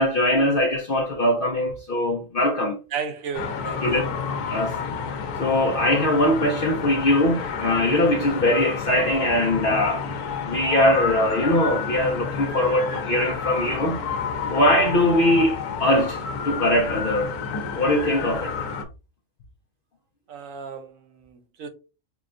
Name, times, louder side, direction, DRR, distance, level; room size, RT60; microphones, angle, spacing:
voice 1, 0.0-2.8 3.8-4.0 4.5-4.8 5.1-10.0 10.4-14.0 14.5-17.4 17.7-18.6, left 1 dB, 60° left, 0.6 m, -21 dB
voice 2, 2.9-4.2 20.3-21.7, right 6 dB, 65° right, 1.1 m, -34 dB
sound 1, 3.3-18.8, left 6 dB, 80° left, 1.2 m, -30 dB
6.0 x 2.2 x 2.5 m
omnidirectional pair, 1.6 m